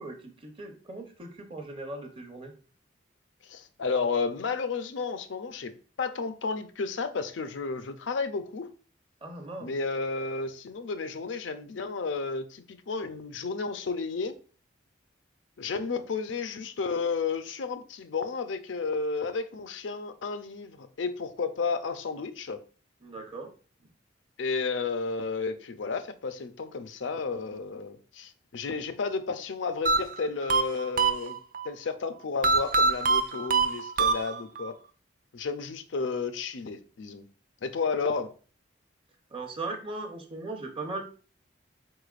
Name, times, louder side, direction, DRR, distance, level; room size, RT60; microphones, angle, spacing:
voice 1, 0.0-2.5 9.2-9.7 23.0-23.5 39.3-41.0, right 2 dB, 30° right, 0.8 m, -38 dB
voice 2, 3.4-8.7 9.6-14.3 15.6-22.6 24.4-31.3 31.6-34.7 35.3-37.2 37.6-38.3, left 4 dB, 75° left, 0.5 m, -32 dB
sound 1, 29.9-31.7 32.4-34.7, right 4 dB, 45° right, 0.4 m, -25 dB
4.8 x 4.4 x 2.4 m
head